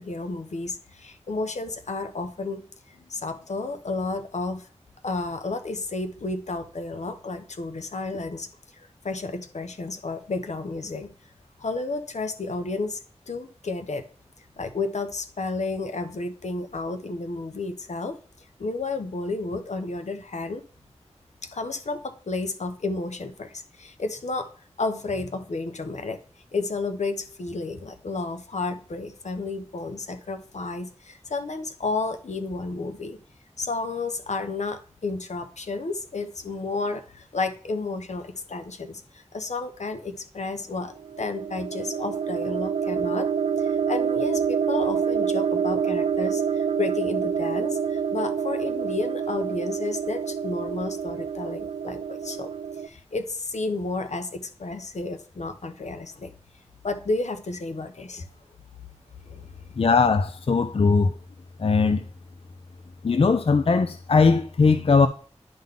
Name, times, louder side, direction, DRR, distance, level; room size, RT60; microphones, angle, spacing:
voice 1, 0.0-4.7 5.0-8.5 9.0-11.1 11.6-13.0 13.3-14.0 14.6-18.2 18.6-20.6 21.4-24.5 24.8-26.2 26.5-33.2 33.6-43.3 43.6-52.5 52.8-56.3 56.8-58.3 59.3-59.4, left 3 dB, 80° left, 0.8 m, -31 dB
sound 1, 41.0-52.9, right 7 dB, 65° right, 0.5 m, -27 dB
voice 2, 59.8-61.1 61.6-62.0 63.0-65.1, left 4 dB, 55° left, 0.4 m, -19 dB
10.5 x 3.8 x 3.6 m
wide cardioid pair, 70°, 12 cm